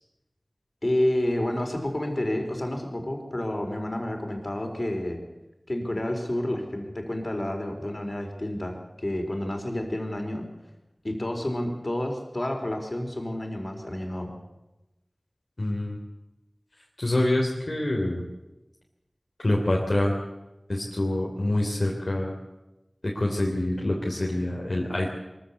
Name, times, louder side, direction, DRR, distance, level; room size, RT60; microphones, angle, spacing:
voice 1, 0.8-5.2 5.7-10.4 11.0-14.3, left 1 dB, 45° left, 3 dB, 4.5 m, -29 dB
voice 2, 15.6-16.0 17.0-18.2 19.4-20.2 20.7-22.3 23.0-25.1, left 1 dB, 65° left, -1 dB, 3.2 m, -26 dB
23.0 x 14.5 x 8.4 m, 1.0 s
wide cardioid pair, 45°, 0 cm